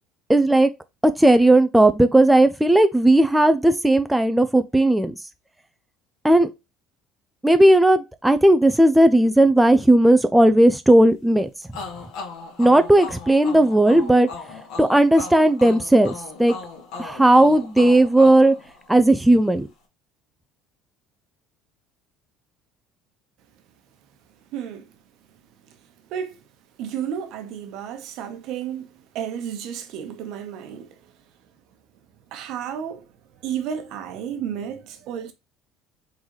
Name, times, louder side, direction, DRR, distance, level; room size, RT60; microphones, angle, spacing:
voice 1, 0.3-0.7 1.0-5.1 6.2-6.5 7.4-11.5 12.6-14.3 14.8-16.1 16.4-16.6 17.0-18.5 18.9-19.7, right 1 dB, 5° right, 0.4 m, -16 dB
sound 1, 11.7-19.3, left 4 dB, 70° left, 1.8 m, -38 dB
voice 2, 24.5-24.9 25.6-25.8 26.1-26.4 26.8-31.1 32.3-33.1 33.4-35.3, right 8 dB, 65° right, 0.9 m, -32 dB
3.9 x 3.8 x 3.1 m
supercardioid pair, 110°, 0 cm